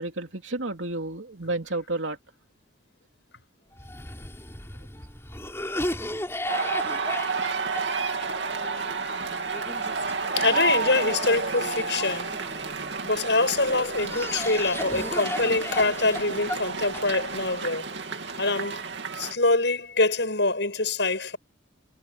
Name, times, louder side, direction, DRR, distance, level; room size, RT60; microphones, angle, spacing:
voice 1, 0.0-2.2 5.8-6.0 9.9-10.1, right 2 dB, 80° right, 3.0 m, -31 dB
Cough, 3.8-13.0 13.6-17.5, left 1 dB, 15° left, 3.4 m, -36 dB
sound 1, 6.5-19.4, right 4 dB, 65° right, 2.6 m, -31 dB
voice 2, 10.4-12.4 13.0-17.9 18.4-18.9 19.1-21.4, left 3 dB, 65° left, 7.8 m, -25 dB
head